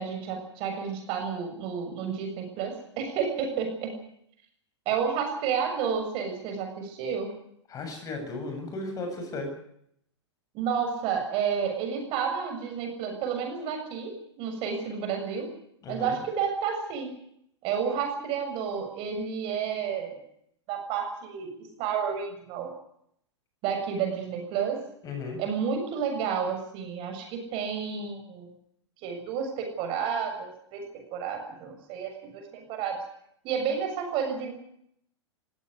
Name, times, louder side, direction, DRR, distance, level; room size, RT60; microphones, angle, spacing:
voice 1, 0.0-3.9 4.9-7.4 10.5-15.5 15.9-17.1 17.6-20.2 20.7-22.7 23.6-24.8 25.4-28.5 29.0-30.8 31.1-33.0 33.4-34.5, right 7 dB, 35° right, 4 dB, 7.0 m, -31 dB
voice 2, 7.7-9.5 15.8-16.2 25.0-25.4, left 3 dB, 25° left, 5 dB, 7.8 m, -35 dB
20.5 x 17.5 x 9.8 m, 0.72 s
figure-of-eight pair, 105°, 15 cm